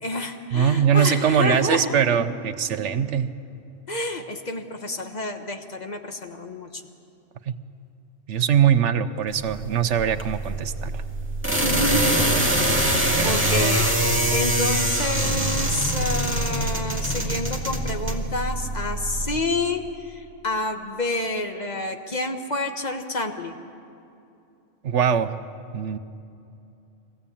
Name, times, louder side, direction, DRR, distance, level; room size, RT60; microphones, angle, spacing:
voice 1, 0.0-2.0 3.9-6.8 11.6-12.3 12.9-23.5, left 2 dB, 35° left, 5 dB, 1.3 m, -29 dB
voice 2, 0.5-3.3 7.5-7.6 8.3-11.0 13.2-13.5 24.8-25.4 25.7-26.0, right 8 dB, 70° right, 11 dB, 1.1 m, -22 dB
sound 1, 9.3-19.4, right 1 dB, 10° right, 2.0 m, -24 dB
23.5 x 16.0 x 8.5 m, 2.7 s
omnidirectional pair, 1.3 m